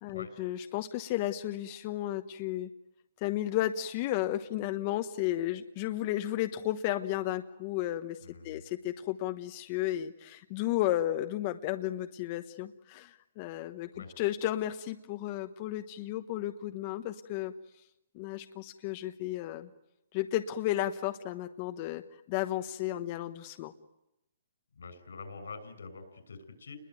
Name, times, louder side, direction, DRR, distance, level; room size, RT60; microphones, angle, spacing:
voice 1, 0.0-2.7 3.2-8.2 8.4-13.9 14.2-17.5 18.1-19.7 20.1-22.0 22.3-23.7, left 13 dB, 30° left, 8 dB, 1.1 m, -33 dB
voice 2, 8.2-8.6 13.9-14.1 24.7-26.8, left 4 dB, 90° left, 10 dB, 6.2 m, -46 dB
29.0 x 21.5 x 9.4 m, 0.89 s
hypercardioid pair, 160°, 0 cm